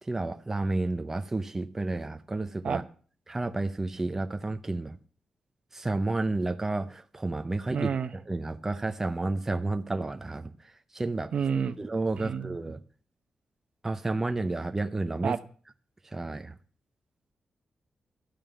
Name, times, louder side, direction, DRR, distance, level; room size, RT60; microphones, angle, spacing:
voice 1, 0.0-2.8 3.3-5.0 5.7-11.3 11.8-12.8 13.8-15.4 16.1-16.5, right 2 dB, 15° right, 0.7 m, -31 dB
voice 2, 7.7-8.1 11.3-11.7 12.2-12.5 15.2-15.4, right 7 dB, 55° right, 0.8 m, -29 dB
13.0 x 5.5 x 9.0 m
wide cardioid pair, 165°, 2 cm